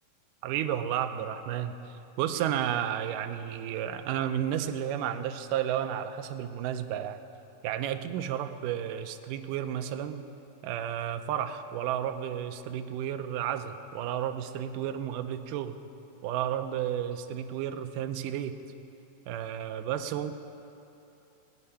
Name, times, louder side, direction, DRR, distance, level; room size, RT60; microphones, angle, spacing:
voice 1, 0.4-7.2 7.6-10.3 10.6-15.8 16.2-18.6 19.3-20.3, right 10 dB, 80° right, 8 dB, 2.1 m, -32 dB
19.5 x 9.5 x 5.6 m, 2.9 s
omnidirectional pair, 3.9 m